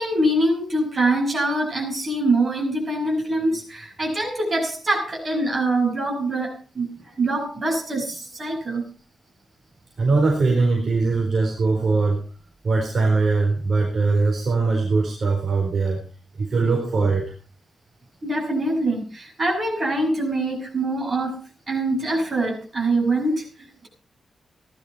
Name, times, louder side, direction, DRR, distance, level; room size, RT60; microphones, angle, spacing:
voice 1, 0.0-8.8 16.5-16.7 18.2-21.4 21.7-23.9, right 2 dB, 30° right, 0 dB, 7.9 m, -24 dB
voice 2, 10.0-12.2 12.6-16.0 16.3-17.3, right 3 dB, 45° right, 0 dB, 4.4 m, -21 dB
17.5 x 12.5 x 4.4 m, 0.36 s
wide cardioid pair, 170°, 0 cm